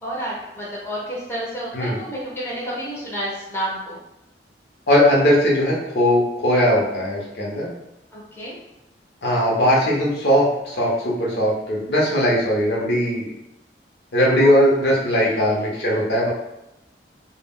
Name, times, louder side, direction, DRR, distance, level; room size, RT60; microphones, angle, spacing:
voice 1, 0.0-3.9 8.1-8.6 14.4-14.5 15.2-15.5, right 1 dB, 15° left, -6 dB, 0.6 m, -30 dB
voice 2, 4.9-7.7 9.2-13.3 14.1-16.3, equal, 65° left, -4 dB, 0.7 m, -19 dB
2.2 x 2.0 x 3.5 m, 0.88 s
head